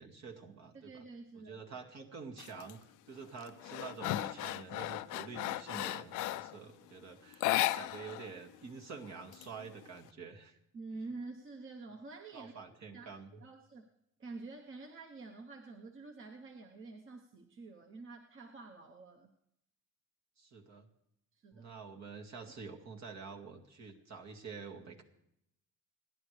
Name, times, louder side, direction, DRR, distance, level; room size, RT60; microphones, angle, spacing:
voice 1, 0.0-1.0 1.3-10.6 12.3-13.4 20.4-20.9 21.5-25.0, right 5 dB, 65° right, 1 dB, 2.2 m, -48 dB
voice 2, 0.7-1.8 10.7-12.5 12.9-13.1 13.4-13.9 14.2-19.3 21.4-21.7, right 3 dB, 45° right, 3 dB, 1.2 m, -48 dB
sound 1, 2.4-2.7 3.2-6.6 7.3-8.3 8.5-8.6 9.0-10.0, left 16 dB, 90° left, 0.5 m, -35 dB
29.5 x 11.0 x 3.4 m, 0.78 s
cardioid pair, 90°, 30 cm